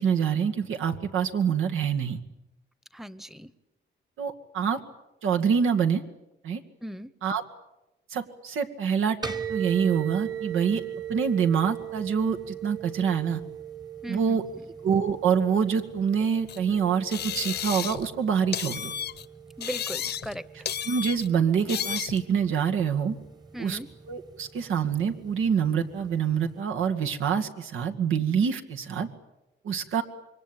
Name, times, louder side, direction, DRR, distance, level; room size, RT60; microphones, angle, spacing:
voice 1, 0.0-2.2 4.2-4.8 5.2-6.0 6.4-6.6 7.2-7.4 8.1-9.2 9.5-10.8 11.1-13.4 14.1-14.4 14.8-18.9 20.9-23.2 23.6-23.8 24.1-29.1 29.6-30.0, right 7 dB, 90° right, 5 dB, 2.2 m, -26 dB
voice 2, 2.9-3.5 6.8-7.1 14.0-14.5 19.6-20.4 23.5-23.9, equal, ahead, 17 dB, 1.0 m, -37 dB
sound 1, 9.2-26.6, right 9 dB, 20° right, 1.4 m, -40 dB
sound 2, 16.5-16.6 17.1-18.1 18.5-19.3 19.6-20.4 20.7-21.3 21.7-22.2, left 9 dB, 55° left, 0.9 m, -33 dB
27.0 x 23.0 x 9.1 m, 0.96 s
cardioid pair, 130°, 20 cm